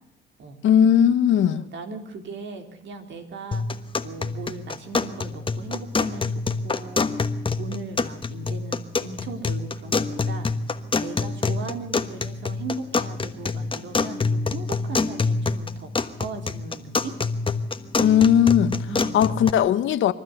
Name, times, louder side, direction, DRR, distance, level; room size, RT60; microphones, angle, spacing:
voice 1, 0.6-1.6 18.0-18.8 19.1-20.1, left 9 dB, 75° left, 1.2 m, -18 dB
voice 2, 1.5-7.1 7.6-10.5 11.0-17.2 18.9-19.2, right 3 dB, 65° right, 3.7 m, -38 dB
sound 1, 3.5-19.5, left 4 dB, 25° left, 1.3 m, -27 dB
26.5 x 12.5 x 8.0 m
cardioid pair, 90°, 20 cm